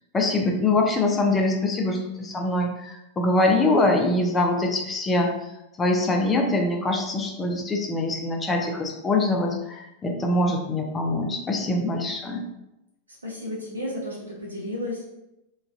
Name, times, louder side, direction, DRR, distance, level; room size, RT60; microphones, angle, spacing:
voice 1, 0.1-5.3 5.8-12.4, left 2 dB, 20° left, 2 dB, 0.4 m, -23 dB
voice 2, 13.2-15.0, left 1 dB, 75° right, -4 dB, 1.0 m, -32 dB
3.0 x 2.3 x 2.4 m, 0.91 s
figure-of-eight pair, 90°, 0 cm